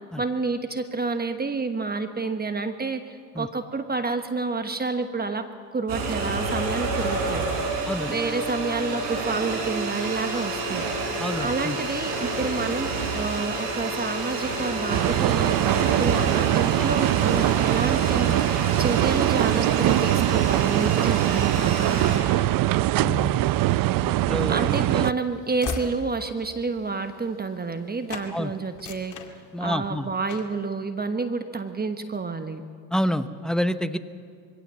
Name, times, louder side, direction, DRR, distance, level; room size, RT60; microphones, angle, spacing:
voice 1, 0.2-7.5 8.1-10.8 11.4-22.5 24.5-29.2 29.6-32.6, right 4 dB, 25° right, 8 dB, 1.2 m, -29 dB
sound 1, 5.9-22.2, right 3 dB, 80° right, 5.7 m, -29 dB
voice 2, 11.2-11.8 16.8-16.9 23.0-23.4 24.0-25.0 28.3-28.5 29.5-30.1 32.9-34.0, equal, ahead, 10 dB, 1.0 m, -28 dB
sound 2, 14.9-25.1, right 15 dB, 55° right, 0.6 m, -22 dB
Train / Slam, 24.2-27.8 28.1-28.3 28.7-29.9 30.3-30.6, left 5 dB, 50° left, 2.5 m, -38 dB
23.0 x 17.0 x 7.6 m, 2.3 s
supercardioid pair, 85°, 40 cm